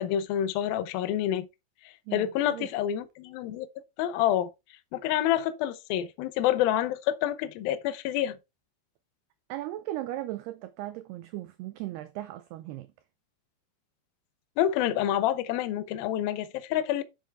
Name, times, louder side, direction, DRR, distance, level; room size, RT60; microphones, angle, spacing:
voice 1, 0.0-1.5 2.1-3.7 4.0-4.5 4.9-8.4 14.6-17.0, left 11 dB, 80° left, 2.1 m, -27 dB
voice 2, 2.1-2.7 9.5-12.9, right 15 dB, 80° right, 2.3 m, -37 dB
7.9 x 6.8 x 3.4 m
omnidirectional pair, 5.3 m